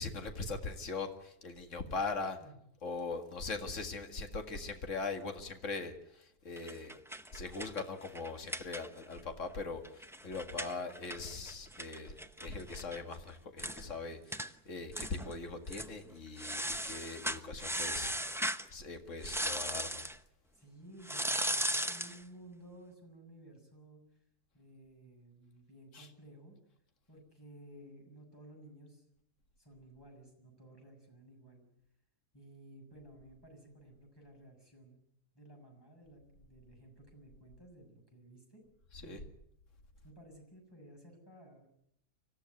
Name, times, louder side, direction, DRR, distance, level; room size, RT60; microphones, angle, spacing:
voice 1, 0.0-2.4 2.8-7.0 7.3-20.1 25.9-26.1 38.9-39.2, left 3 dB, 50° left, 6 dB, 2.4 m, -41 dB
sound 1, 6.6-9.2 9.5-9.6 9.8-13.0 13.3-13.4 13.6-13.8 14.3-14.5 14.9-15.3 15.7-15.9 16.4-18.7 19.2-20.2 21.0-22.2, right 1 dB, 5° right, 0.5 m, -37 dB
voice 2, 20.5-24.0 24.5-26.6 27.1-29.0 29.6-31.7 32.3-35.0 35.3-38.6 39.0-39.2 40.0-41.7, right 1 dB, 15° left, 1 dB, 6.7 m, -55 dB
25.5 x 15.0 x 9.5 m, 0.77 s
omnidirectional pair, 1.7 m